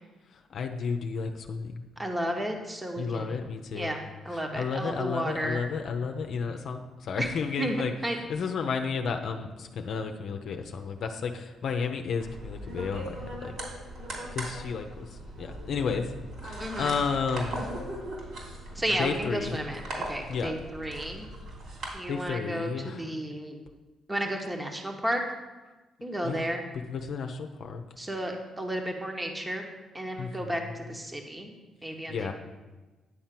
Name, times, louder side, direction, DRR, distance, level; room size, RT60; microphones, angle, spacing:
voice 1, 0.5-1.8 3.0-4.0 4.3-13.5 14.3-15.1 15.4-16.1 16.4-17.6 19.0-19.6 20.3-20.6 22.1-23.1 26.2-26.5 26.7-27.8 30.2-30.8 32.1-32.3, left 5 dB, 65° left, 5 dB, 0.7 m, -32 dB
voice 2, 2.0-3.4 3.7-4.0 4.2-5.6 7.2-7.3 7.6-8.2 16.6-16.9 18.7-21.2 21.9-23.6 24.1-25.2 26.0-26.6 28.0-29.7 29.9-31.5 31.8-32.3, right 1 dB, 15° right, 3 dB, 1.1 m, -32 dB
sound 1, 12.2-21.9, right 1 dB, 65° right, 3.2 m, -39 dB
9.9 x 4.3 x 7.6 m, 1.2 s
cardioid pair, 90°, 0 cm